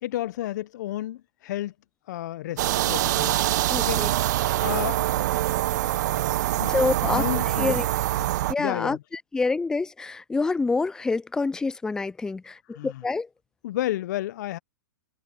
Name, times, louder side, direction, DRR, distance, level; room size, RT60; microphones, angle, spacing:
voice 1, 0.0-1.7 2.1-3.4 3.8-5.0 6.6-7.8 8.6-9.0 12.7-13.0 13.6-14.6, left 14 dB, 55° left, 0.8 m, -32 dB
sound 1, 2.6-8.5, right 15 dB, 55° right, 0.9 m, -24 dB
voice 2, 3.7-4.1 6.7-7.3 7.6-7.9 8.5-9.0 9.3-13.3, left 3 dB, 5° left, 0.3 m, -27 dB
hypercardioid pair, 120°, 11 cm